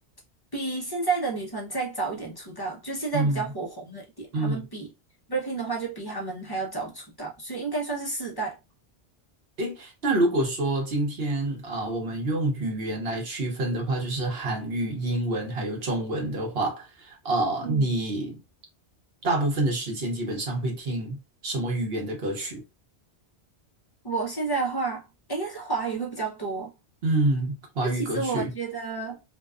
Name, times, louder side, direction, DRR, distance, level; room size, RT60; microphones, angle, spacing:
voice 1, 0.5-4.9 5.3-8.6 17.6-17.9 24.0-26.7 27.8-29.2, right 4 dB, 25° left, 0.7 m, -31 dB
voice 2, 3.1-3.4 4.3-4.7 9.6-18.4 19.2-21.2 21.4-22.6 27.0-28.5, right 2 dB, 65° right, 1.1 m, -27 dB
2.6 x 2.2 x 2.3 m
omnidirectional pair, 1.1 m